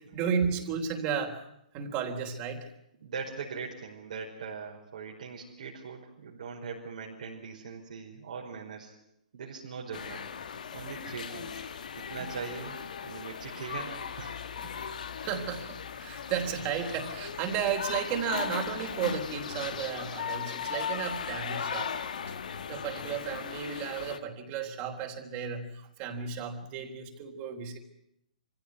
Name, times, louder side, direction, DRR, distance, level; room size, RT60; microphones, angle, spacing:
voice 1, 0.0-1.4 1.7-2.7 12.2-12.3 14.6-14.8 15.2-21.9 22.7-25.7 26.0-27.8, right 7 dB, 35° right, 3 dB, 3.7 m, -33 dB
voice 2, 3.0-8.9 9.3-10.3 10.7-11.6 11.9-14.4 15.3-15.5, right 5 dB, 70° right, -3 dB, 5.1 m, -41 dB
sound 1, 9.9-24.2, left 7 dB, 75° left, 1.7 m, -37 dB
24.0 x 16.0 x 9.5 m, 0.78 s
hypercardioid pair, 135°, 4 cm